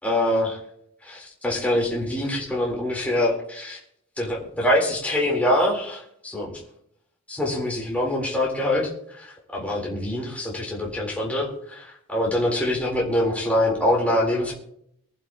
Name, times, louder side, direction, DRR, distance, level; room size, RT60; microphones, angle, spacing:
voice 1, 0.0-0.6 1.0-3.8 4.2-6.6 7.3-8.9 9.2-9.3 9.5-14.5, left 1 dB, 5° left, -3 dB, 3.9 m, -24 dB
24.0 x 11.0 x 3.0 m, 0.71 s
head